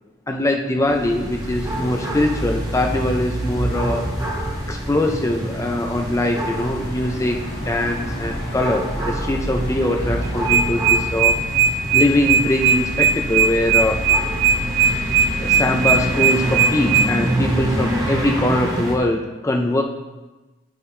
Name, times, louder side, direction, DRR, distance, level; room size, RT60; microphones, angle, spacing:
voice 1, 0.3-4.0 4.7-7.4 7.7-11.4 11.9-14.0 15.4-19.8, left 1 dB, 15° left, 2 dB, 0.4 m, -22 dB
sound 1, 0.8-19.0, right 1 dB, 15° right, 1.0 m, -26 dB
Truck, 4.7-13.3, left 1 dB, 50° left, 1.2 m, -38 dB
sound 2, 10.2-17.1, right 7 dB, 70° right, 0.7 m, -16 dB
10.5 x 5.6 x 3.2 m, 1.1 s
head